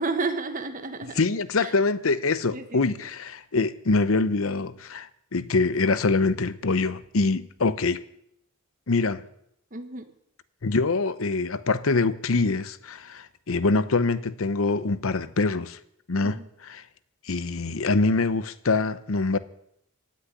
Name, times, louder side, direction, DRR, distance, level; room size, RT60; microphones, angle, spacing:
voice 1, 0.0-1.2 1.6-1.7 2.5-3.1 9.7-10.1 16.2-16.5, right 3 dB, 40° right, 1.5 m, -32 dB
voice 2, 1.2-8.0 8.9-9.2 10.6-15.8 16.1-16.8 17.2-19.4, left 3 dB, 70° left, 0.8 m, -24 dB
16.0 x 6.3 x 9.8 m
head